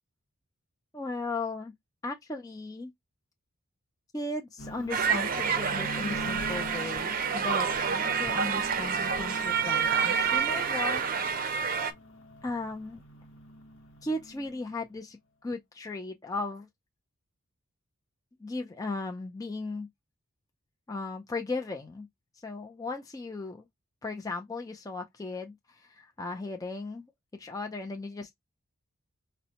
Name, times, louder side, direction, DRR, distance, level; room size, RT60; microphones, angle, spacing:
voice 1, 0.9-1.7 2.0-2.9 4.1-11.0 12.4-13.0 14.0-16.7 18.4-19.9 20.9-22.1 22.3-23.7 24.0-27.1 27.3-28.4, left 2 dB, 15° left, 0.4 m, -36 dB
sound 1, 4.6-14.8, equal, 60° left, 0.9 m, -44 dB
sound 2, 4.9-11.9, right 6 dB, 40° right, 0.5 m, -28 dB
5.1 x 2.1 x 2.8 m
head